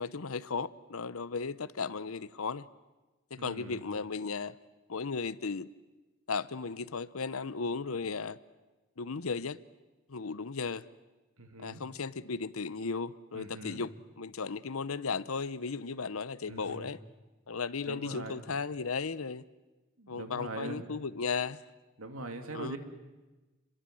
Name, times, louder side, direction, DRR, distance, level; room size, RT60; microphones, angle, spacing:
voice 1, 0.0-2.7 3.3-4.5 4.9-5.7 6.3-8.4 9.0-9.6 10.1-10.8 11.6-13.9 14.2-17.0 17.5-19.4 20.1-21.6 22.5-22.8, left 4 dB, 90° left, 0.9 m, -35 dB
voice 2, 3.3-3.8 11.4-11.8 13.3-13.8 16.5-16.9 17.8-18.4 20.0-21.1 22.0-22.8, right 2 dB, 85° right, 2.8 m, -42 dB
29.5 x 22.5 x 7.8 m
head